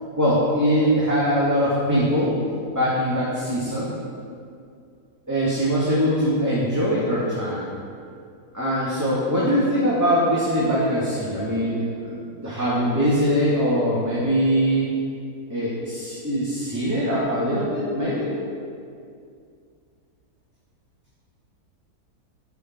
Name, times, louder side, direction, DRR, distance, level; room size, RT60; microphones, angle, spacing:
voice 1, 0.2-2.3 2.7-3.9 5.3-7.7 8.5-14.9 15.5-18.4, equal, 10° right, -9 dB, 2.3 m, -22 dB
19.0 x 7.0 x 4.6 m, 2.3 s
omnidirectional pair, 1.7 m